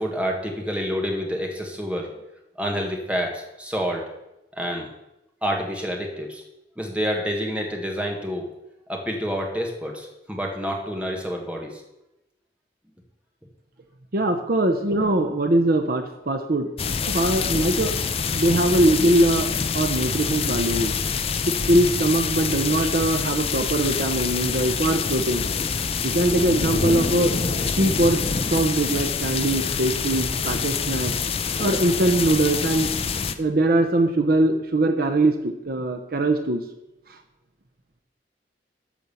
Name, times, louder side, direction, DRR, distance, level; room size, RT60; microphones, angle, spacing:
voice 1, 0.0-2.1 2.5-4.0 4.5-4.9 5.4-6.4 6.8-8.5 8.9-11.8, equal, 5° right, 1 dB, 1.6 m, -28 dB
voice 2, 14.1-16.7 17.1-17.9 18.3-19.5 19.7-20.9 21.5-25.5 26.0-27.3 27.7-28.2 28.5-31.1 31.6-32.9 33.4-36.6, right 1 dB, 55° right, 5 dB, 0.8 m, -21 dB
sound 1, 16.8-33.3, left 5 dB, 35° left, 0.5 m, -26 dB
12.5 x 4.6 x 7.0 m, 0.91 s
head